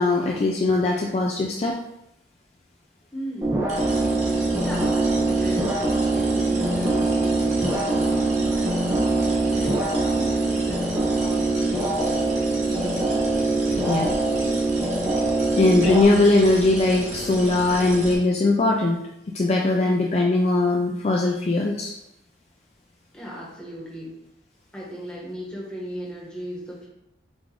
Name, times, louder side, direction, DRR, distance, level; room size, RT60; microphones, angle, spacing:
voice 1, 0.0-1.8 13.9-14.1 15.6-19.0 19.3-22.0, left 2 dB, 35° left, 0 dB, 0.3 m, -20 dB
voice 2, 3.1-3.8 4.6-5.7 6.1-9.0 9.5-12.2 12.6-13.1 19.8-20.0 23.1-24.1 24.7-26.9, equal, 5° left, -5 dB, 1.1 m, -37 dB
sound 1, 3.4-16.0, right 2 dB, 15° right, 0.6 m, -23 dB
sound 2, 3.7-18.1, right 1 dB, 40° right, 1.0 m, -33 dB
4.8 x 2.5 x 3.7 m, 0.84 s
head